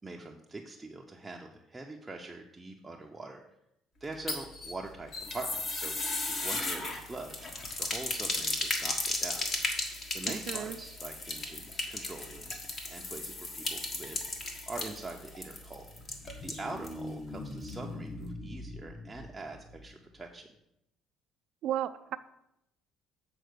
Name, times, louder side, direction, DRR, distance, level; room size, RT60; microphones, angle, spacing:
voice 1, 0.0-3.4 4.0-5.9 6.3-7.4 7.8-9.5 10.1-12.6 12.9-14.2 14.7-15.9 16.4-20.5, right 2 dB, 15° right, 0 dB, 0.7 m, -43 dB
sound 1, 4.0-17.0 17.3-17.4 17.7-17.8, left 2 dB, 40° left, 1.5 m, -35 dB
voice 2, 10.3-10.8 21.6-22.2, right 11 dB, 65° right, 9 dB, 0.5 m, -34 dB
sound 2, 15.8-20.3, left 1 dB, 25° left, 1.1 m, -43 dB
7.8 x 4.3 x 6.6 m, 0.83 s
cardioid pair, 115°, 0 cm